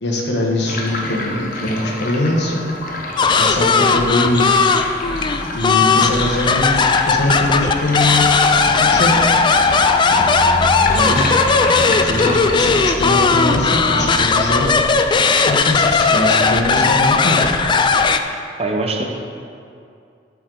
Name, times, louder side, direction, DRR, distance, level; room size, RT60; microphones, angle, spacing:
voice 1, 0.0-2.7 3.4-4.8 5.5-8.2 8.8-9.3 10.2-10.3 10.6-11.4 11.9-12.3 12.5-14.7 15.4-17.4, left 1 dB, 70° left, -1 dB, 1.2 m, -22 dB
sound 1, 0.6-13.7, left 2 dB, 50° left, 0.8 m, -28 dB
sound 2, 3.2-18.2, left 4 dB, 25° left, 0.3 m, -16 dB
sound 3, 7.9-14.7, right 1 dB, 55° right, 1.2 m, -28 dB
voice 2, 18.3-19.0, right 2 dB, 35° right, 1 dB, 0.8 m, -24 dB
12.0 x 4.7 x 3.9 m, 2.4 s
head